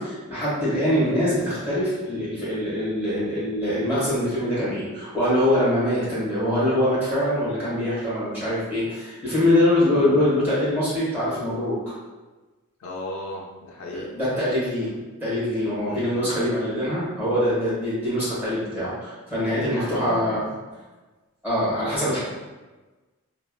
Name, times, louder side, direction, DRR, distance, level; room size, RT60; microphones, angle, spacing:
voice 1, 0.0-11.9 13.9-20.5 21.4-22.2, left 1 dB, 10° right, -10 dB, 1.2 m, -24 dB
voice 2, 12.8-14.1 15.9-16.4 19.7-20.5 22.0-22.2, left 2 dB, 70° left, -2 dB, 0.4 m, -36 dB
3.0 x 2.0 x 2.2 m, 1.2 s
head